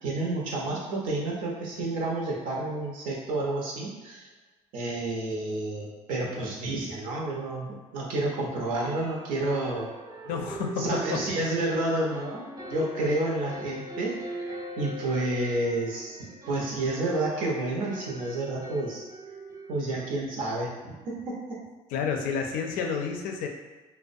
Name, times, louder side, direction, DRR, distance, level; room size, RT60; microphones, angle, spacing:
voice 1, 0.0-4.3 4.7-7.7 7.9-9.9 10.8-12.4 12.7-19.0 19.7-21.6, right 2 dB, 70° right, -3 dB, 0.7 m, -30 dB
sound 1, 4.8-4.9 5.3-5.4 5.7-5.8 8.8-20.2, right 1 dB, 25° right, 0.5 m, -41 dB
voice 2, 10.2-11.2 21.9-23.5, left 6 dB, 75° left, 3 dB, 0.4 m, -30 dB
2.4 x 2.1 x 2.5 m, 1.2 s
supercardioid pair, 95°, 14 cm